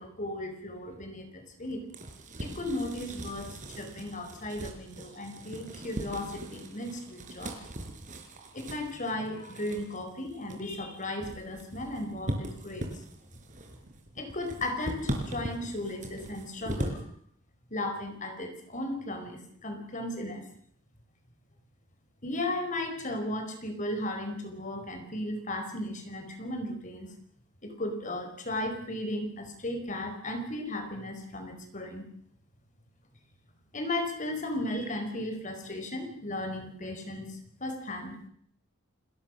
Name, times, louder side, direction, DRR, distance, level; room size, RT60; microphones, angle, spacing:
voice 1, 0.0-1.9 2.4-7.6 8.5-13.0 14.2-17.0 17.7-20.4 22.2-27.1 27.6-32.1 33.7-38.2, left 1 dB, 40° left, 6 dB, 5.0 m, -35 dB
sound 1, 1.6-17.0, right 1 dB, 40° right, 4.7 m, -40 dB
29.5 x 21.5 x 6.5 m, 0.66 s
head